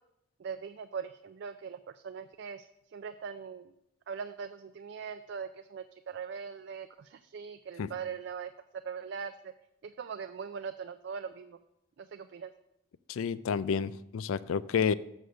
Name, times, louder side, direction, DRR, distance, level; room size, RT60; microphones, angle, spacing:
voice 1, 0.4-2.7 2.9-3.7 4.1-8.5 8.8-9.5 9.8-11.6 12.0-12.5, right 6 dB, 55° right, 9 dB, 0.3 m, -41 dB
voice 2, 13.1-14.9, left 6 dB, 70° left, 18 dB, 0.3 m, -30 dB
6.5 x 6.4 x 6.8 m, 0.83 s
head